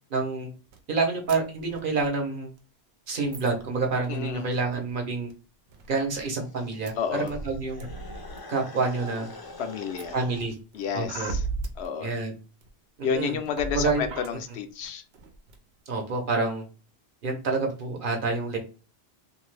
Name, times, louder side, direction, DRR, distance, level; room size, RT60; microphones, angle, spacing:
voice 1, 0.1-0.5 0.9-2.5 3.1-5.3 5.9-7.9 8.5-9.3 10.1-10.6 10.9-11.3 12.0-12.3 13.0-13.4 13.7-14.1 15.9-16.6 17.2-18.6, right 3 dB, 55° right, 0.9 m, -28 dB
sound 1, 0.7-0.8 1.3-1.4 1.6-2.1 2.6-2.7 3.2-4.4 4.7-4.9 5.3-5.4 5.7-6.3 6.9-7.0 7.3-8.4 8.9-9.3 9.9-11.9 12.6-12.7 13.1-14.3 14.8-14.9 15.1-15.6, right 3 dB, 90° right, 0.9 m, -37 dB
voice 2, 4.1-4.5 7.0-7.3 9.6-10.2 10.7-11.4 11.8-12.1 13.0-15.0, left 7 dB, 80° left, 0.8 m, -30 dB
sound 2, 6.3-10.5, left 2 dB, 35° left, 0.4 m, -44 dB
2.6 x 2.4 x 3.2 m
omnidirectional pair, 1.1 m